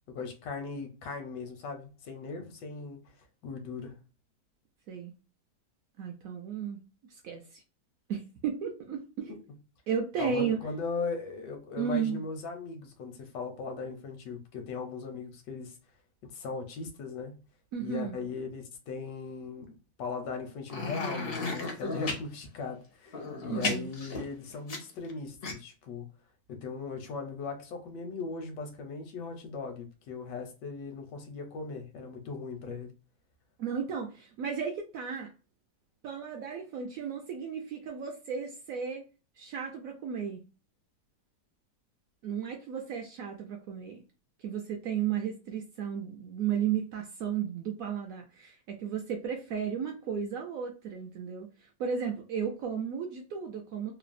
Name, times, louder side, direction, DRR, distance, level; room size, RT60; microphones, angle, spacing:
voice 1, 0.1-3.1 3.4-4.0 10.2-15.8 16.2-17.3 17.8-26.1 26.5-32.9, left 4 dB, 80° left, 1.3 m, -38 dB
voice 2, 6.0-6.8 7.1-7.6 8.1-9.4 9.9-10.6 11.8-12.2 17.7-18.2 23.5-23.9 33.6-35.3 36.0-39.0 39.4-40.4 42.2-44.0 44.4-54.0, right 7 dB, 70° right, 0.8 m, -34 dB
sound 1, 20.7-22.2 23.1-25.1 25.4-25.5, left 3 dB, 60° left, 0.6 m, -34 dB
3.1 x 2.0 x 2.4 m
omnidirectional pair, 1.9 m